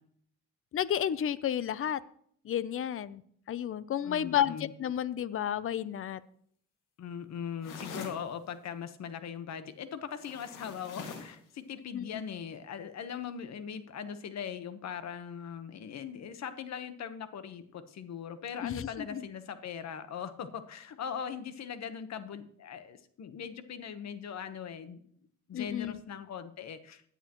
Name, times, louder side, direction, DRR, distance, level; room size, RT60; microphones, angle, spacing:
voice 1, 0.7-2.0 2.4-3.2 3.5-6.2 11.9-12.2 18.6-19.3 25.5-26.0, left 10 dB, 45° left, 17 dB, 0.6 m, -32 dB
voice 2, 4.0-4.7 7.0-25.0 25.5-27.0, left 7 dB, 60° left, 11 dB, 1.2 m, -40 dB
sound 1, 7.6-8.2 10.2-11.4, left 5 dB, 85° left, 2.1 m, -43 dB
16.0 x 10.0 x 3.1 m, 0.63 s
cardioid pair, 90°, 30 cm